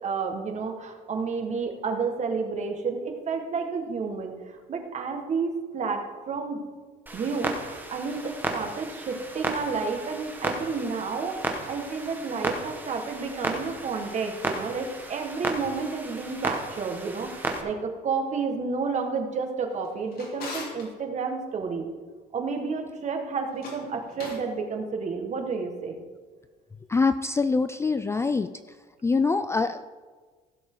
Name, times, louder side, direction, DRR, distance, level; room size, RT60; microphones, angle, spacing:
voice 1, 0.0-6.7 7.1-21.9 22.3-26.0, right 4 dB, 45° right, 4 dB, 1.8 m, -31 dB
Clock, 7.1-17.6, right 2 dB, 10° right, 1.6 m, -34 dB
Drawer open or close, 19.7-20.9 23.5-24.5, left 3 dB, 65° left, 3.3 m, -41 dB
voice 2, 26.9-28.5 29.0-29.9, left 4 dB, 15° left, 11 dB, 0.3 m, -24 dB
16.0 x 7.1 x 3.9 m, 1.4 s
cardioid pair, 110°, 17 cm